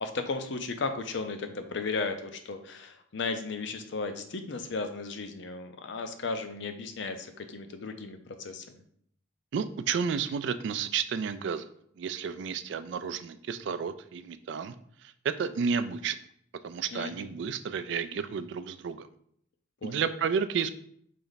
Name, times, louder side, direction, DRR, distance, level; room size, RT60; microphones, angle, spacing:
voice 1, 0.0-8.8 16.9-17.3 19.8-20.0, left 4 dB, 60° left, 7 dB, 0.5 m, -35 dB
voice 2, 9.5-11.7 12.0-14.8 15.0-16.2 16.6-19.1 19.8-20.7, right 6 dB, 60° right, 12 dB, 0.3 m, -31 dB
4.0 x 3.3 x 4.0 m, 0.68 s
head